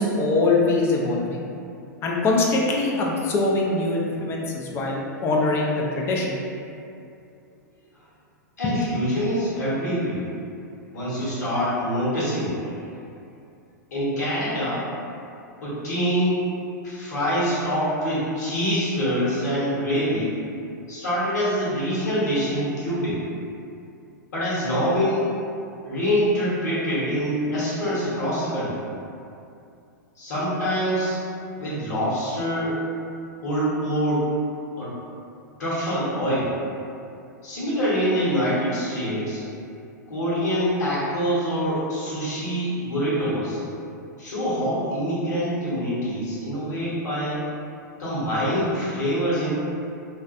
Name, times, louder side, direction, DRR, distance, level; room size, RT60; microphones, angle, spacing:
voice 1, 0.0-1.4 2.0-6.4, left 2 dB, 25° left, -2 dB, 0.4 m, -23 dB
voice 2, 8.6-10.3 10.9-12.8 13.9-14.9 15.6-16.4 16.8-20.3 20.9-23.2 24.3-25.3 25.8-28.8 30.2-31.2 31.6-32.8 33.4-34.3 34.8-34.9 35.6-36.5 37.4-39.4 40.1-43.6 44.2-47.4 48.0-49.5, equal, 65° left, -9 dB, 1.0 m, -25 dB
2.5 x 2.2 x 2.4 m, 2.6 s
hypercardioid pair, 105°, 10 cm